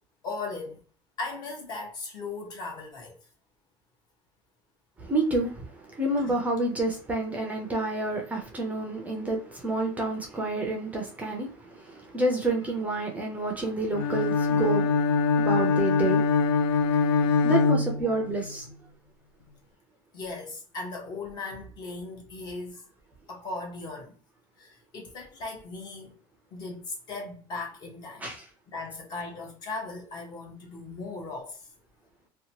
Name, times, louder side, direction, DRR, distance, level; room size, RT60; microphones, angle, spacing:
voice 1, 0.2-0.8 1.2-3.2 6.2-6.3 20.1-22.8 23.3-24.1 24.6-26.2 26.5-28.3 28.7-31.6, left 3 dB, 40° left, 1.0 m, -38 dB
voice 2, 5.0-5.7 6.0-16.3 17.4-18.7 28.2-28.4, right 2 dB, 15° right, 0.5 m, -29 dB
Bowed string instrument, 13.9-18.5, left 4 dB, 80° left, 0.4 m, -23 dB
2.8 x 2.2 x 2.8 m
cardioid pair, 150°, 11 cm